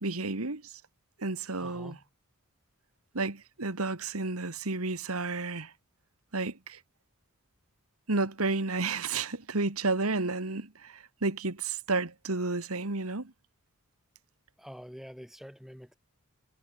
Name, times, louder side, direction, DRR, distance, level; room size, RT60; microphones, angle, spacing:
voice 1, 0.0-0.7 1.2-2.0 3.1-5.7 6.3-6.8 8.1-13.3, right 3 dB, 90° right, 2.1 m, -31 dB
voice 2, 1.6-2.0 14.6-16.0, equal, ahead, 6.9 m, -46 dB
head